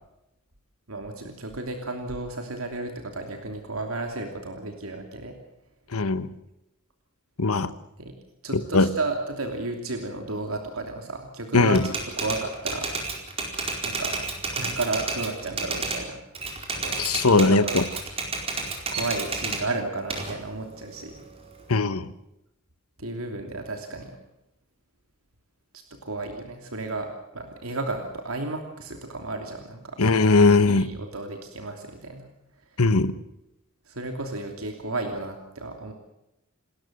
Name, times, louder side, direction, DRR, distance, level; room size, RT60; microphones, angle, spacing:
voice 1, 0.9-5.3 8.0-8.1 8.4-12.9 13.8-14.2 14.5-16.2 16.7-17.8 18.9-21.2 23.0-24.2 25.7-27.1 27.3-30.0 30.7-32.3 33.9-35.9, right 2 dB, 75° right, 4 dB, 3.0 m, -33 dB
voice 2, 5.9-6.3 7.4-7.7 8.5-8.9 11.5-11.8 17.0-17.8 21.7-22.1 30.0-30.9 32.8-33.2, left 3 dB, 90° left, 14 dB, 1.3 m, -20 dB
Typewriter, 11.7-16.0 16.3-19.6 20.1-21.8, right 3 dB, 25° right, 4.5 m, -31 dB
29.0 x 13.5 x 8.0 m, 0.89 s
head